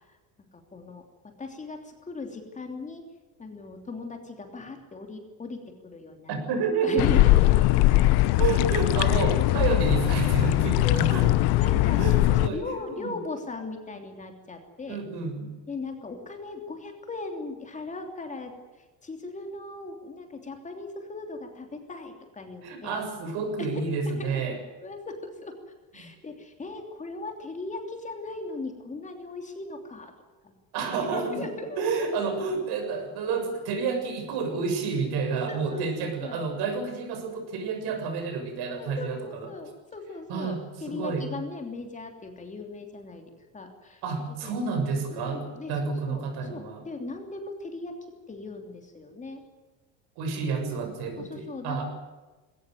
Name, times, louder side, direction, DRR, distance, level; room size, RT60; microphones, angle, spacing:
voice 1, 0.5-3.0 3.4-6.3 6.8-8.0 10.8-11.3 11.6-12.1 12.5-15.0 15.7-23.0 23.6-23.8 24.2-25.5 25.9-30.1 30.4-30.5 31.1-32.0 35.3-36.5 38.7-40.5 40.8-44.0 44.4-44.6 45.1-47.9 48.3-49.4 51.2-51.8, left 3 dB, 15° left, 4 dB, 3.1 m, -38 dB
voice 2, 6.3-7.1 8.3-11.3 12.0-13.2 14.9-15.5 22.6-24.6 26.0-26.1 30.7-31.5 31.8-39.2 40.3-41.3 44.0-45.4 45.7-46.8 50.2-51.8, right 5 dB, 60° right, 6 dB, 7.0 m, -30 dB
sound 1, 7.0-12.5, left 17 dB, 60° left, 1.0 m, -21 dB
21.0 x 18.5 x 9.4 m, 1.2 s
cardioid pair, 155°, 43 cm